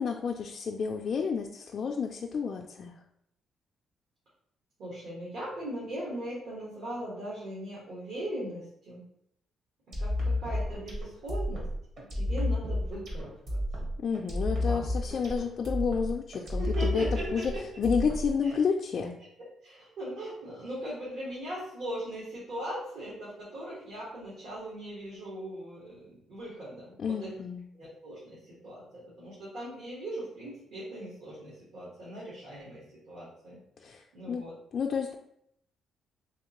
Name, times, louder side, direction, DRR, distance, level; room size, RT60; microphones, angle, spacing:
voice 1, 0.0-2.9 14.0-17.1 17.3-17.4 17.8-19.1 27.0-27.6 33.8-34.4 34.7-35.1, left 6 dB, 55° left, 2 dB, 0.3 m, -30 dB
voice 2, 4.8-9.0 10.0-11.6 12.1-13.6 14.5-14.8 16.6-17.6 18.4-18.5 19.2-19.3 19.6-27.3 27.7-34.5, right 1 dB, 75° right, -8 dB, 1.5 m, -39 dB
sound 1, 9.9-18.6, left 1 dB, 60° right, 1.4 m, -31 dB
3.4 x 3.1 x 3.0 m, 0.73 s
cardioid pair, 90°, 0 cm